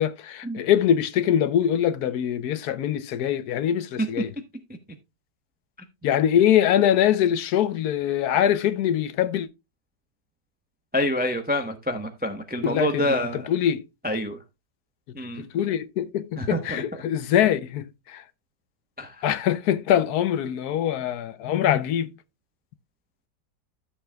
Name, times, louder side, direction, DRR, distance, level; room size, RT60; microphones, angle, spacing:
voice 1, 0.0-4.3 6.0-9.5 12.6-13.8 15.4-18.2 19.2-22.1, left 10 dB, 70° left, 1.2 m, -23 dB
voice 2, 10.9-13.5 14.0-14.4 15.1-15.4 16.4-16.8 19.0-19.2, equal, 10° right, 0.7 m, -27 dB
13.0 x 7.1 x 2.3 m
omnidirectional pair, 1.8 m